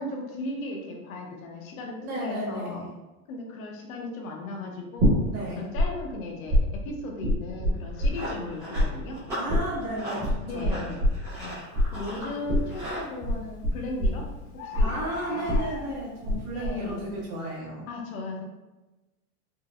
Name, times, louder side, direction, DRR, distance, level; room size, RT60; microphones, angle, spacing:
voice 1, 0.0-2.8 3.3-5.2 5.6-9.2 9.9-11.0 11.4-11.6 11.9-14.2 14.5-14.9 15.3-15.4 16.5-17.1 17.9-18.4, left 2 dB, 65° left, 1 dB, 0.8 m, -36 dB
voice 2, 2.0-2.9 5.3-5.7 9.3-10.9 14.8-17.8, right 1 dB, 70° right, -5 dB, 1.5 m, -33 dB
sound 1, 5.0-5.9 6.1-8.5 8.7-16.4 16.6-17.2, left 1 dB, 35° right, 1.0 m, -25 dB
Run, 7.7-13.1, equal, 5° right, 0.3 m, -39 dB
Bird, 11.3-11.5 12.1-12.5 13.6-13.7 13.9-14.0 14.2-14.3 14.6-16.3 16.9-17.0, left 4 dB, 90° left, 0.8 m, -40 dB
4.5 x 2.0 x 2.3 m, 1.1 s
supercardioid pair, 165°, 45 cm